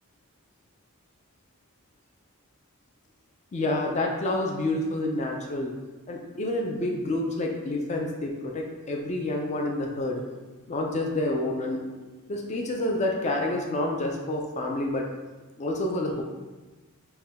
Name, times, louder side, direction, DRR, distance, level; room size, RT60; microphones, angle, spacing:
voice 1, 3.5-5.7 6.1-10.2 10.7-11.8 12.3-15.1 15.6-16.2, left 1 dB, 30° left, 1 dB, 0.4 m, -28 dB
4.5 x 2.2 x 3.4 m, 1.2 s
head